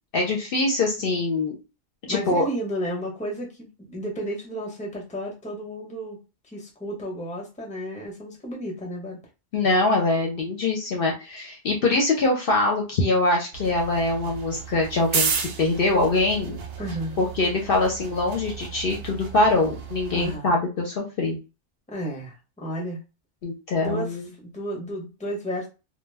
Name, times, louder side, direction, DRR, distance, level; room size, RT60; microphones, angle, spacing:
voice 1, 0.1-1.6 2.1-2.5 9.5-16.6 17.2-21.4 23.4-24.3, left 2 dB, 60° left, 0 dB, 0.7 m, -23 dB
voice 2, 2.1-6.2 6.5-9.2 16.8-17.2 20.1-20.5 21.9-23.0 23.8-25.7, equal, 10° left, -2 dB, 0.6 m, -32 dB
sound 1, 13.5-20.4, right 6 dB, 65° right, 0.7 m, -33 dB
2.2 x 2.1 x 3.3 m, 0.30 s
omnidirectional pair, 1.2 m